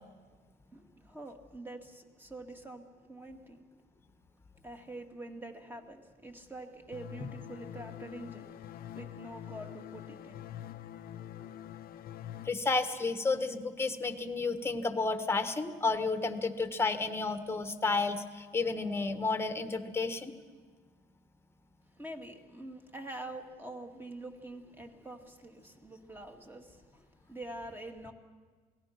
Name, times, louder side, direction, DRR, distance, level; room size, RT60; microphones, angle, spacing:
voice 1, 0.7-3.6 4.6-10.5 22.0-28.1, right 1 dB, 10° right, 4 dB, 2.2 m, -46 dB
sound 1, 6.9-12.5, left 11 dB, 60° left, 0.7 m, -45 dB
voice 2, 12.4-20.3, left 3 dB, 15° left, 9 dB, 1.5 m, -31 dB
28.0 x 18.5 x 5.9 m, 1.5 s
cardioid pair, 110°, 17 cm